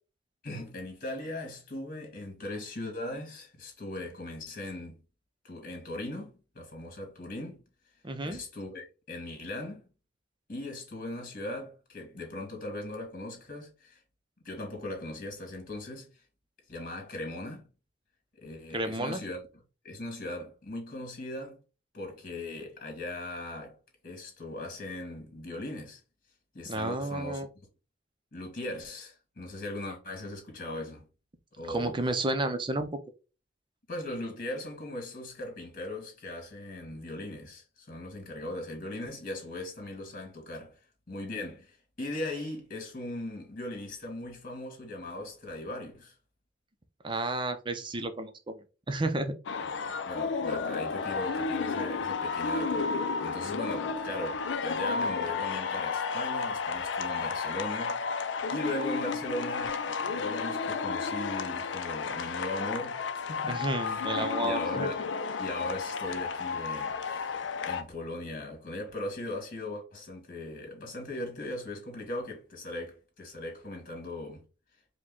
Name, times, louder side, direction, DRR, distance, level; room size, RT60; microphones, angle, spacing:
voice 1, 0.4-5.0 5.4-7.6 8.2-9.9 10.5-14.0 14.4-16.1 16.7-17.7 18.4-19.4 19.8-21.6 21.9-23.8 24.0-26.0 26.5-27.7 28.3-31.0 31.6-32.0 33.9-40.8 41.1-46.1 50.1-58.0 58.5-65.0 65.4-67.4 67.7-74.4, left 1 dB, 50° left, 1.8 m, -39 dB
voice 2, 8.0-8.4 18.7-19.2 26.7-27.5 31.6-32.9 47.0-49.3 63.5-64.9, right 2 dB, 25° right, 0.6 m, -31 dB
sound 1, 49.5-67.8, left 5 dB, 75° left, 0.5 m, -32 dB
5.0 x 2.2 x 3.7 m
head